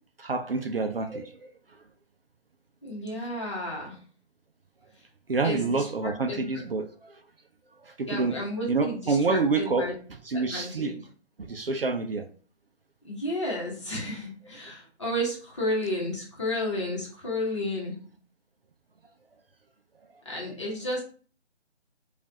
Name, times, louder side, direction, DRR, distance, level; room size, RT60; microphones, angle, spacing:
voice 1, 0.2-1.3 5.3-6.9 8.0-8.4 8.7-9.9 10.3-11.0 11.5-12.2, right 4 dB, 55° right, 7 dB, 0.4 m, -27 dB
voice 2, 2.8-4.0 5.4-6.5 8.1-9.9 10.3-11.0 13.0-18.0 20.2-21.0, left 1 dB, 25° left, -3 dB, 1.0 m, -32 dB
4.8 x 2.4 x 2.7 m, 0.43 s
figure-of-eight pair, 160°, 35 cm